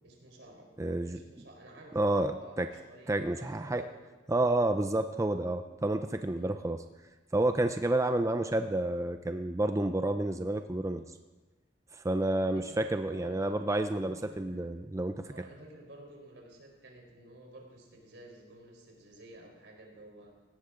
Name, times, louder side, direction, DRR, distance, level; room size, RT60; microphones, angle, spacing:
voice 1, 0.0-0.7 1.1-4.1 6.3-6.6 12.2-14.7 15.2-20.3, right 1 dB, 75° right, 0 dB, 4.3 m, -52 dB
voice 2, 0.8-1.2 1.9-2.7 3.1-3.8 4.3-6.8 7.3-11.2 11.9-15.3, right 2 dB, 15° right, 8 dB, 0.5 m, -30 dB
18.5 x 17.0 x 3.8 m, 1.2 s
head